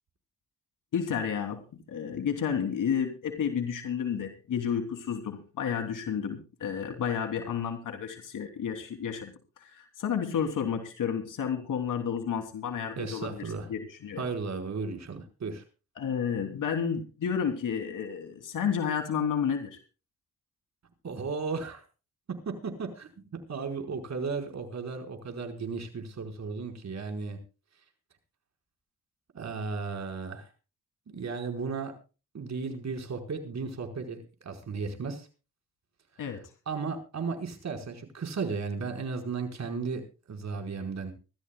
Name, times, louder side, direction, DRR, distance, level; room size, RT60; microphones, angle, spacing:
voice 1, 0.9-1.6 1.9-13.4 13.7-14.2 16.0-19.7 36.2-36.4, left 7 dB, 80° left, 5 dB, 3.1 m, -31 dB
voice 2, 13.0-13.7 14.2-15.6 21.0-21.8 22.4-23.1 23.5-27.4 29.3-30.5 31.1-31.9 32.3-35.3 36.7-40.0 40.3-41.1, right 4 dB, 60° right, 4 dB, 4.9 m, -35 dB
24.0 x 14.0 x 2.3 m, 0.34 s
cardioid pair, 80°, 31 cm